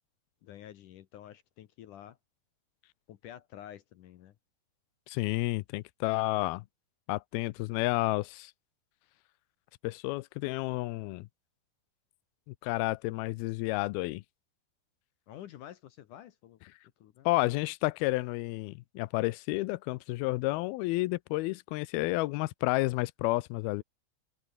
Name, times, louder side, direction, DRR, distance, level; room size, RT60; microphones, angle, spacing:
voice 1, 0.4-2.2 3.1-4.3 15.3-16.6 17.0-17.3, left 11 dB, 65° left, 2.3 m, -49 dB
voice 2, 5.1-6.7 7.1-8.5 9.8-11.3 12.5-14.2 17.3-23.8, left 20 dB, 85° left, 2.5 m, -31 dB
omnidirectional pair, 4.5 m